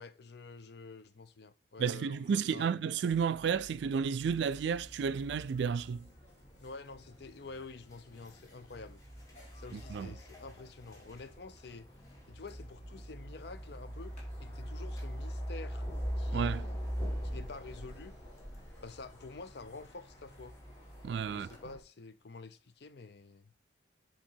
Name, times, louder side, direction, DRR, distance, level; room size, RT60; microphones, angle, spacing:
voice 1, 0.0-2.7 6.6-9.0 9.5-11.9 12.3-15.9 16.2-16.8 17.2-18.2 18.8-20.6 21.3-23.6, left 3 dB, 60° left, 0.6 m, -48 dB
voice 2, 1.8-6.1 9.7-10.1 16.3-16.7 21.0-21.5, right 6 dB, 65° right, 0.3 m, -32 dB
sound 1, 3.1-21.8, equal, 20° left, 1.4 m, -43 dB
sound 2, 4.3-21.7, left 1 dB, 40° left, 2.3 m, -63 dB
7.2 x 2.9 x 4.5 m
head